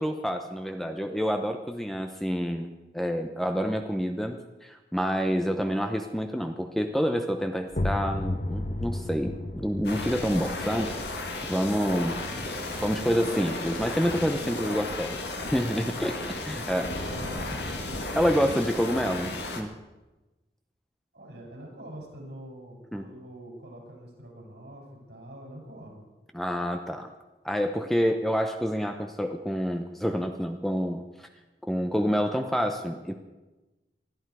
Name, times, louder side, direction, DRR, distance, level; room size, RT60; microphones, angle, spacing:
voice 1, 0.0-10.9 11.5-12.2 12.8-15.2 15.5-17.0 18.2-19.7 22.9-23.0 26.3-27.1 27.4-31.3 31.7-33.2, equal, ahead, 5 dB, 0.7 m, -28 dB
sound 1, 7.7-13.2, left 1 dB, 45° left, 0.8 m, -34 dB
sound 2, 9.8-19.6, left 2 dB, 75° left, 1.9 m, -34 dB
voice 2, 17.1-17.8 21.1-26.1, right 1 dB, 70° right, -1 dB, 6.9 m, -45 dB
20.5 x 13.0 x 4.8 m, 1.1 s
head